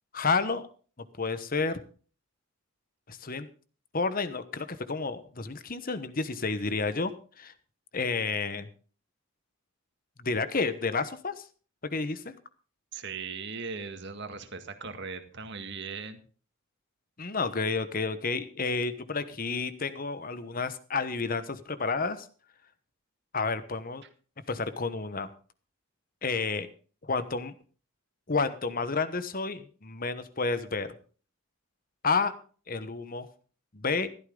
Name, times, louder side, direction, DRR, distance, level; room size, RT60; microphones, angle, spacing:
voice 1, 0.1-0.6 1.2-1.8 3.1-3.5 3.9-7.1 7.4-7.5 7.9-8.7 10.2-11.4 11.8-12.3 17.2-22.3 23.3-24.0 24.5-25.3 26.2-26.7 27.0-27.5 28.3-30.9 32.0-32.3 32.7-33.3 33.7-34.1, left 4 dB, 40° left, 12 dB, 1.1 m, -30 dB
voice 2, 12.9-16.2, right 5 dB, 55° right, 8 dB, 1.9 m, -38 dB
15.0 x 13.0 x 3.9 m, 0.39 s
head